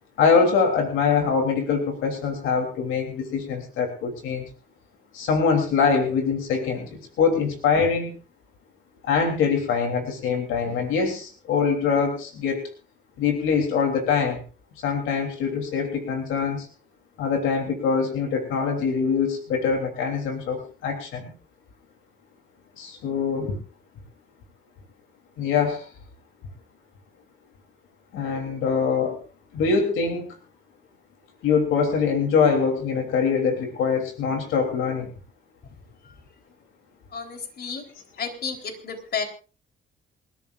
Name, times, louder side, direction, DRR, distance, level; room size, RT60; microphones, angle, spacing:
voice 1, 0.2-4.4 5.1-8.2 9.0-12.7 13.2-14.4 14.8-16.7 17.2-21.3 22.8-23.6 25.4-25.9 28.1-29.2 29.5-30.3 31.4-35.1, left 5 dB, 90° left, 3 dB, 3.3 m, -23 dB
voice 2, 37.1-37.8 38.2-39.2, left 5 dB, 50° left, 4 dB, 3.9 m, -31 dB
27.5 x 13.5 x 2.5 m, 0.36 s
cardioid pair, 90°, 20 cm